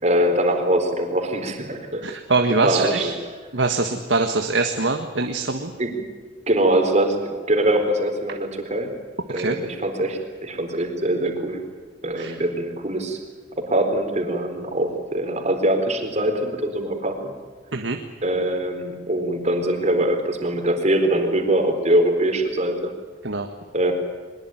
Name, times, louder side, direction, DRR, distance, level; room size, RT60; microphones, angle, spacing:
voice 1, 0.0-2.1 2.6-3.1 5.8-6.0 6.5-8.9 9.3-11.6 12.0-13.2 13.6-17.3 18.2-22.9 23.7-23.9, right 1 dB, 40° right, 5 dB, 4.3 m, -22 dB
voice 2, 2.0-3.1 3.5-5.7 9.3-9.6 12.2-12.4 17.7-18.0 23.2-23.5, right 3 dB, 80° right, 5 dB, 1.7 m, -23 dB
22.5 x 21.5 x 9.3 m, 1.4 s
head